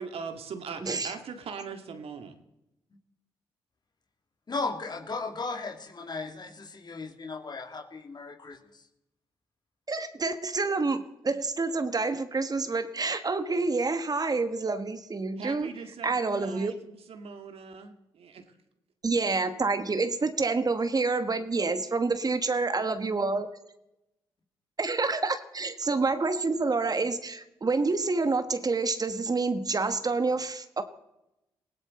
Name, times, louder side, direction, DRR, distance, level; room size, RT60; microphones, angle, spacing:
voice 1, 0.0-2.4 15.4-18.4, right 5 dB, 65° right, 6 dB, 2.0 m, -40 dB
voice 2, 0.8-1.1 9.9-15.7 16.0-16.7 19.0-23.5 24.8-30.8, right 3 dB, 35° right, 10 dB, 1.4 m, -28 dB
voice 3, 4.5-8.6, left 3 dB, 40° left, 6 dB, 2.3 m, -36 dB
19.5 x 16.5 x 4.3 m, 0.88 s
hypercardioid pair, 45°, 11 cm